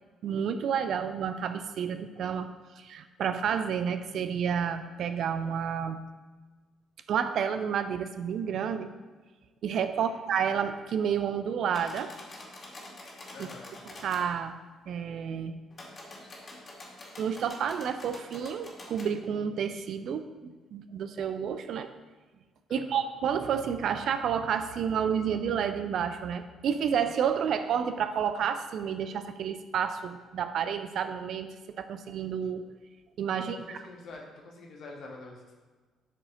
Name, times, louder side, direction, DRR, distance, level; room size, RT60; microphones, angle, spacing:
voice 1, 0.2-6.0 7.1-8.9 9.6-12.1 13.4-13.5 13.8-14.6 14.9-15.6 17.2-21.9 22.7-32.7 33.2-33.8, right 7 dB, 55° right, 10 dB, 0.5 m, -30 dB
sound 1, 11.7-14.2 15.7-19.1, left 2 dB, 35° left, 2.1 m, -46 dB
voice 2, 13.3-13.7 22.7-23.0 33.4-35.6, left 3 dB, 50° left, 0 dB, 1.6 m, -46 dB
12.5 x 4.8 x 3.8 m, 1.3 s
figure-of-eight pair, 45°, 0 cm